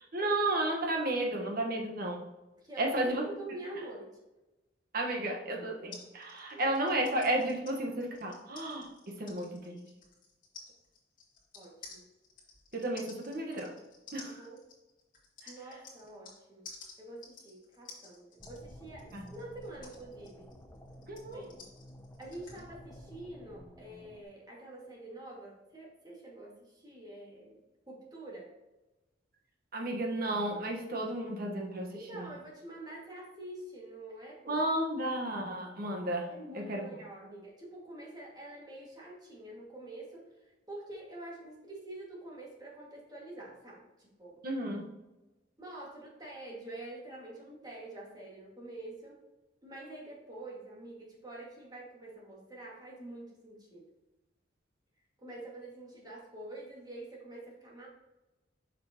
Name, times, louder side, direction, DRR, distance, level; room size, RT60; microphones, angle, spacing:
voice 1, 0.1-2.3 2.8-3.2 4.9-9.8 12.7-13.7 14.1-14.4 15.4-15.5 19.1-19.3 21.1-21.4 29.7-32.3 34.5-36.3 36.5-36.9 44.4-44.8, right 1 dB, 55° right, 1 dB, 1.4 m, -33 dB
voice 2, 2.6-4.1 6.5-6.7 11.5-12.1 14.2-14.6 15.5-16.7 17.0-20.5 21.3-21.6 22.2-27.6 27.9-28.5 31.9-34.6 36.3-44.4 45.6-49.2 49.6-53.9 55.2-57.9, right 2 dB, 25° right, -3 dB, 2.1 m, -46 dB
sound 1, 5.9-16.4 16.6-22.6, left 4 dB, 50° left, 2.2 m, -52 dB
sound 2, 18.4-24.2, equal, 15° left, 0.7 m, -52 dB
7.4 x 6.0 x 3.0 m, 1.1 s
head